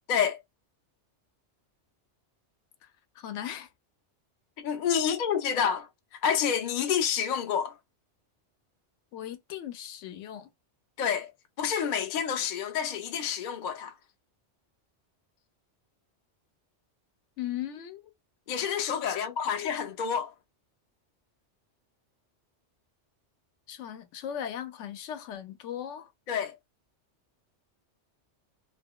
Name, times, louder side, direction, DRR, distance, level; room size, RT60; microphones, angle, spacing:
voice 1, 0.1-0.4 4.6-7.8 11.0-11.3 11.6-13.9 18.5-20.3 26.3-26.6, left 7 dB, 55° left, 0.5 m, -28 dB
voice 2, 3.2-3.7 9.1-10.5 17.4-18.0 19.1-19.7 23.7-26.1, left 10 dB, 85° left, 0.9 m, -38 dB
2.7 x 2.4 x 2.2 m
omnidirectional pair, 1.2 m